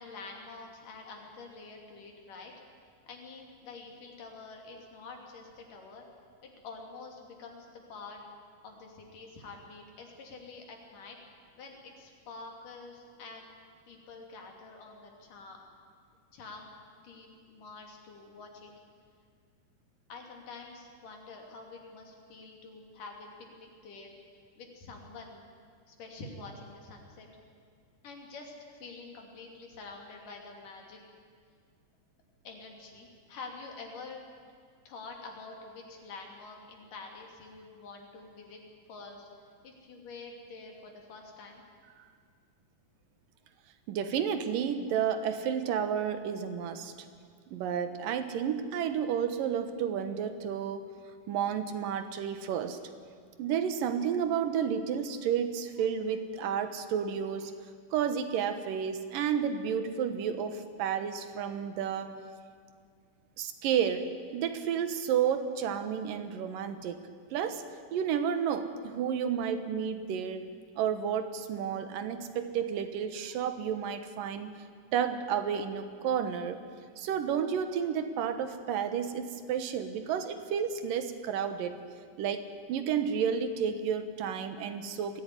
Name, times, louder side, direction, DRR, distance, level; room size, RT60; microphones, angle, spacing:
voice 1, 0.0-2.5 3.1-6.1 6.4-8.2 8.6-11.2 11.6-13.5 13.9-15.6 16.3-16.7 17.0-18.7 20.1-23.3 23.6-24.1 24.6-25.5 25.9-27.3 28.0-28.5 28.8-31.0 32.4-34.2 34.9-38.6 38.9-39.3 39.6-41.6, left 3 dB, 75° left, 1 dB, 4.4 m, -47 dB
voice 2, 43.9-46.9 47.5-50.9 51.3-52.8 53.4-57.5 57.9-62.2 63.4-67.0 67.3-67.7 67.9-70.4 70.8-74.5 74.9-76.6 77.0-81.8 82.2-85.2, right 8 dB, 85° right, 10 dB, 2.9 m, -31 dB
22.0 x 15.5 x 9.9 m, 2.1 s
omnidirectional pair, 3.8 m